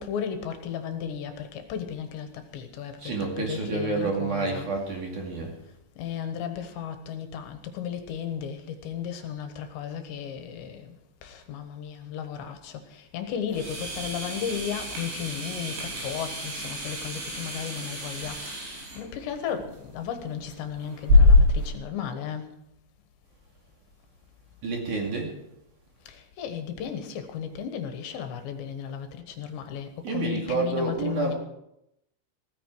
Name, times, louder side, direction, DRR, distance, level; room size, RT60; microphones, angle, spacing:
voice 1, 0.0-4.7 6.0-22.5 26.1-31.3, left 8 dB, 75° left, 7 dB, 3.4 m, -35 dB
voice 2, 3.0-5.5 24.6-25.3 30.0-31.3, right 3 dB, 50° right, 0 dB, 3.4 m, -29 dB
sound 1, 13.5-21.7, left 2 dB, 65° right, 7.4 m, -25 dB
16.5 x 14.5 x 4.6 m, 0.81 s
omnidirectional pair, 5.3 m